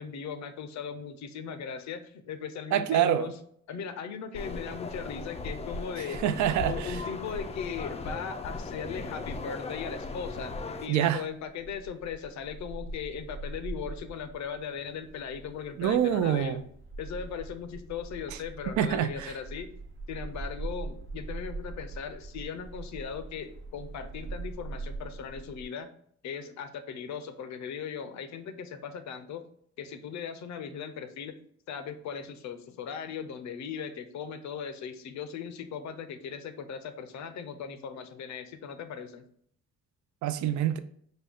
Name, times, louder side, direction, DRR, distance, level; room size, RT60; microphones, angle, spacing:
voice 1, 0.0-3.3 3.7-6.3 6.7-10.5 10.8-16.7 17.0-19.7 20.1-25.9 26.2-29.4 29.8-31.4 31.7-39.2, left 7 dB, 65° left, 0.6 m, -38 dB
voice 2, 2.7-3.3 6.2-7.0 10.9-11.2 15.8-16.6 18.8-19.3 40.2-40.8, right 10 dB, 70° right, 0.4 m, -26 dB
sound 1, 4.3-10.9, left 3 dB, 20° left, 0.4 m, -37 dB
sound 2, 9.1-25.6, right 3 dB, 40° right, 0.8 m, -43 dB
5.0 x 2.2 x 3.5 m
cardioid pair, 90°, 30 cm